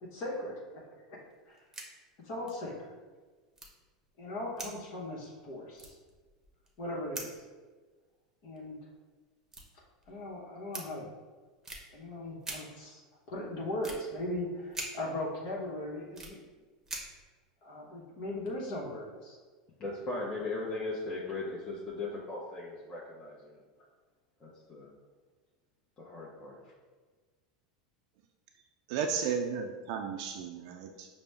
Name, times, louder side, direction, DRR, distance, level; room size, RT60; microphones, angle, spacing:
voice 1, 0.0-0.6 1.1-1.2 1.5-1.6 2.2-2.9 4.2-6.0 6.8-7.4 8.4-8.8 10.1-11.1 11.9-13.0 13.3-16.4 17.6-19.4, left 1 dB, 60° left, -4 dB, 1.0 m, -38 dB
sound 1, 1.3-1.9 2.2-2.3 2.4-2.6 3.5-4.1 4.6-5.4 5.7-6.8 7.1-7.4 8.6-8.7 9.4-10.2 10.7-10.8 11.6-11.8 12.4-12.6 13.8-14.0 14.7-14.9 15.5-16.3 16.8-17.2, right 2 dB, 10° right, 0.8 m, -43 dB
voice 2, 19.8-23.6 24.4-24.9 26.0-26.6, left 2 dB, 30° left, -5 dB, 0.7 m, -38 dB
voice 3, 28.9-31.1, right 6 dB, 65° right, 3 dB, 0.3 m, -34 dB
5.1 x 2.1 x 3.3 m, 1.4 s
hypercardioid pair, 105°, 3 cm